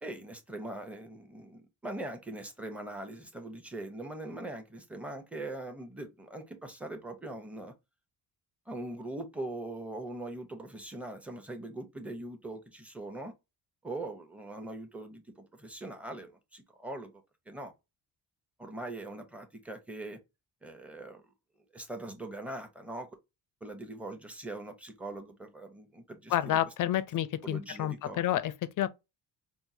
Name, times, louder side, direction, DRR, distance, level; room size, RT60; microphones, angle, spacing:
voice 1, 0.0-7.7 8.7-13.3 13.8-17.7 18.6-20.2 20.6-21.2 21.7-23.1 23.6-26.6 27.4-28.3, right 2 dB, 5° right, 0.9 m, -41 dB
voice 2, 26.3-28.9, left 12 dB, 50° left, 0.5 m, -29 dB
4.4 x 2.1 x 2.7 m
cardioid pair, 95°, 41 cm